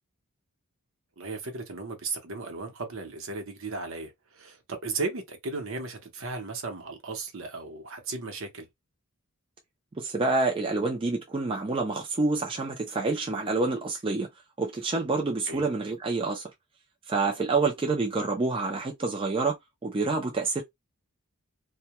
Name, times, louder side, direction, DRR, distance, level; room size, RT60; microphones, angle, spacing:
voice 1, 1.2-8.7 15.5-15.7, right 3 dB, 60° right, 0.8 m, -35 dB
voice 2, 10.0-14.3 14.6-16.4 17.1-20.6, right 3 dB, 25° right, 0.4 m, -27 dB
2.2 x 2.2 x 2.8 m
head